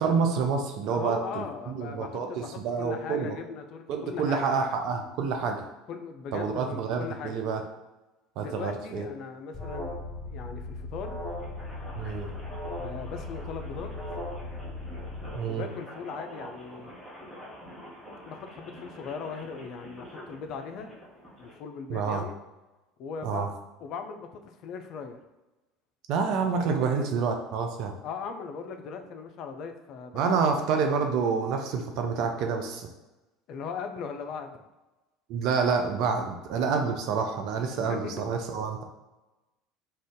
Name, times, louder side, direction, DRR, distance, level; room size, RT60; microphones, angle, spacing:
voice 1, 0.0-3.4 3.9-5.7 6.3-7.6 8.4-9.1 12.0-12.3 15.3-15.7 21.9-22.2 23.2-23.5 26.1-27.9 30.1-32.9 35.3-38.8, right 5 dB, 55° right, 4 dB, 0.4 m, -28 dB
voice 2, 0.9-4.4 5.9-7.4 8.4-11.2 12.7-14.2 15.4-16.9 18.2-20.9 21.4-22.3 23.0-23.5 23.8-25.2 26.5-27.2 28.0-30.6 33.5-34.6 37.9-38.2, left 5 dB, 50° left, 5 dB, 0.3 m, -39 dB
Alarm, 9.5-15.4, left 2 dB, 15° left, 0.9 m, -37 dB
sound 1, 11.2-21.5, equal, 10° right, 1.1 m, -46 dB
2.5 x 2.2 x 3.6 m, 1.1 s
figure-of-eight pair, 65°, 0 cm